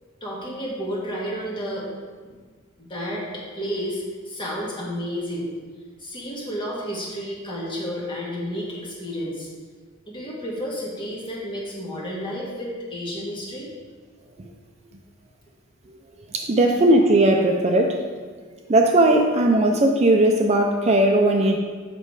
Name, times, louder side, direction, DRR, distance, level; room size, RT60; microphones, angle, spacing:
voice 1, 0.2-1.9 2.2-2.4 2.8-5.5 6.0-9.5 10.1-13.7, equal, 25° left, -5 dB, 2.0 m, -31 dB
voice 2, 16.3-18.0 18.7-21.6, right 1 dB, 30° right, 2 dB, 0.5 m, -18 dB
7.6 x 5.4 x 4.7 m, 1.5 s
head